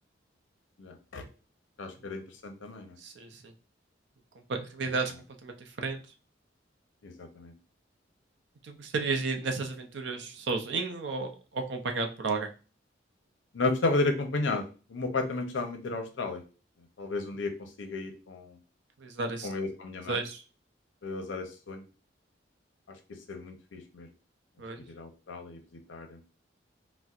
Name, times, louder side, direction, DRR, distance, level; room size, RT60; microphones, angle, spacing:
voice 1, 0.8-1.3 1.8-3.0 7.0-7.5 13.5-14.6 14.9-16.4 17.0-18.6 19.4-20.2 21.0-21.8 23.3-24.1 24.9-25.6 25.9-26.2, left 3 dB, 80° left, 6 dB, 0.6 m, -33 dB
voice 2, 3.0-3.5 4.5-5.1 5.4-6.0 8.6-12.5 19.0-19.5 20.1-20.4 24.6-24.8, right 4 dB, 65° right, 6 dB, 0.5 m, -33 dB
4.1 x 2.1 x 2.4 m, 0.34 s
head